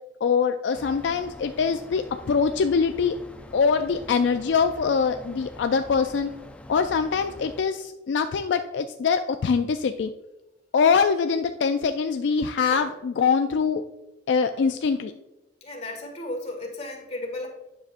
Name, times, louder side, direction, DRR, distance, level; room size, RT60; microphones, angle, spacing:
voice 1, 0.2-3.2 3.5-6.3 6.7-10.1 10.7-13.8 14.3-15.1, left 5 dB, 75° left, 7 dB, 0.3 m, -23 dB
sound 1, 0.7-7.6, left 1 dB, 5° left, 0.4 m, -44 dB
voice 2, 15.6-17.5, left 2 dB, 35° left, -1 dB, 1.8 m, -34 dB
9.6 x 6.6 x 2.5 m, 1.0 s
head